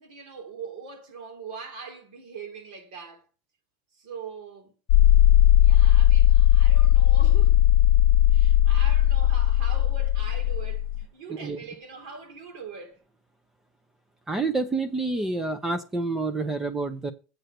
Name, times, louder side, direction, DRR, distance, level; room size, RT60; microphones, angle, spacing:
voice 1, 0.0-3.3 3.9-4.7 5.6-7.7 8.3-13.0, right 5 dB, 85° right, 3.5 m, -42 dB
sound 1, 4.9-11.0, left 12 dB, 80° left, 0.6 m, -18 dB
voice 2, 14.3-17.1, right 3 dB, 10° right, 0.6 m, -28 dB
8.0 x 5.6 x 6.6 m
cardioid pair, 160°, 4 cm